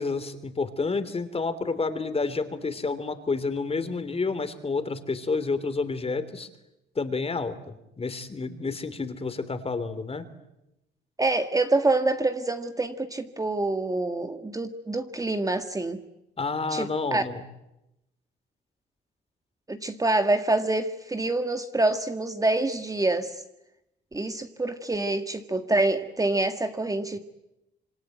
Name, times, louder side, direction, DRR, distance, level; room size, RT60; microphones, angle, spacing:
voice 1, 0.0-6.5 6.9-10.3 16.4-17.4, left 4 dB, 30° left, 12 dB, 3.1 m, -29 dB
voice 2, 11.2-16.0 16.7-17.2 19.7-23.4 24.1-27.2, right 2 dB, 15° right, 8 dB, 1.7 m, -26 dB
26.5 x 24.0 x 9.2 m, 0.91 s
cardioid pair, 90°, 20 cm